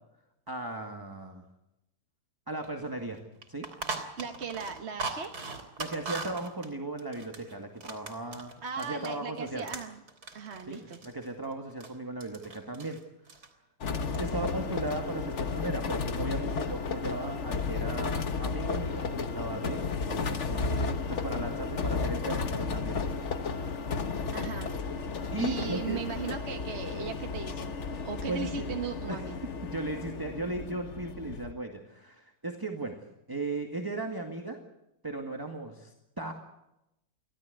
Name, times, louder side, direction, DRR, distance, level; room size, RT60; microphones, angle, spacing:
voice 1, 0.5-1.4 2.5-3.2 3.5-3.7 5.8-8.5 8.8-9.7 10.7-13.0 14.1-23.2 25.3-26.0 26.9-27.0 28.3-28.7 29.1-29.2 29.6-34.6 35.0-36.3, right 2 dB, 15° right, 3 dB, 2.0 m, -36 dB
sound 1, 2.6-2.7 3.0-3.1 3.4-9.2 9.5-11.9 12.2-13.0 13.3-13.5 13.9-14.3 14.6-15.3, right 3 dB, 65° right, 3.6 m, -40 dB
voice 2, 4.2-5.3 8.6-10.0 10.3-11.0 24.3-24.7 25.4-27.7 28.0-29.4, right 6 dB, 45° right, 5 dB, 1.4 m, -37 dB
sound 2, 13.8-31.5, left 4 dB, 45° left, 1.4 m, -33 dB
25.0 x 16.0 x 8.2 m, 0.86 s
omnidirectional pair, 1.8 m